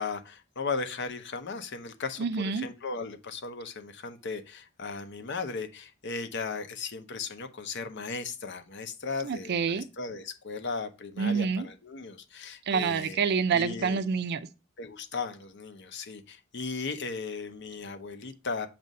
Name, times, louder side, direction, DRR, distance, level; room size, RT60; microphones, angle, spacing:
voice 1, 0.0-2.3 2.5-13.2 13.5-14.0 14.8-18.7, left 4 dB, 60° left, 0.8 m, -36 dB
voice 2, 2.2-2.6 9.2-9.9 11.2-11.7 12.7-14.4, right 6 dB, 55° right, 0.4 m, -27 dB
7.5 x 2.6 x 5.2 m
head